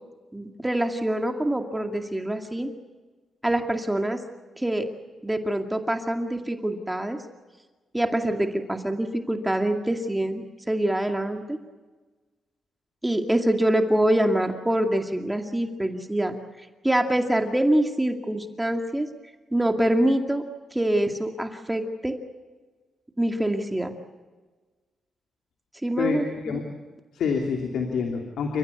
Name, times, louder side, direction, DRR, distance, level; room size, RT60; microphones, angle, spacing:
voice 1, 0.3-2.7 3.4-4.2 4.6-4.9 5.2-7.2 7.9-11.6 13.0-16.3 16.8-19.1 19.5-20.4 20.7-22.1 23.2-23.9 25.8-26.6, right 1 dB, 10° right, 4 dB, 2.2 m, -25 dB
voice 2, 26.0-26.7 27.1-28.6, left 5 dB, 80° left, 2 dB, 3.0 m, -27 dB
29.5 x 15.0 x 8.5 m, 1.3 s
cardioid pair, 80°, 0 cm